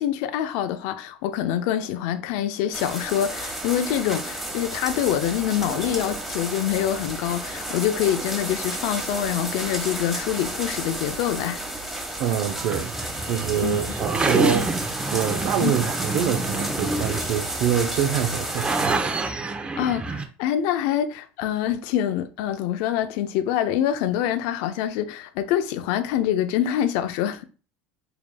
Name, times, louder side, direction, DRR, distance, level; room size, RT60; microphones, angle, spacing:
voice 1, 0.0-11.6 13.6-13.8 15.6-15.8 19.8-27.4, left 10 dB, 70° left, 0.5 m, -25 dB
sound 1, 2.7-18.9, right 1 dB, ahead, 1.2 m, -32 dB
voice 2, 12.2-12.9 13.3-19.3, right 9 dB, 65° right, 0.5 m, -26 dB
sound 2, 12.5-20.2, right 3 dB, 20° right, 0.6 m, -28 dB
4.7 x 3.4 x 2.2 m
supercardioid pair, 100°, 5 cm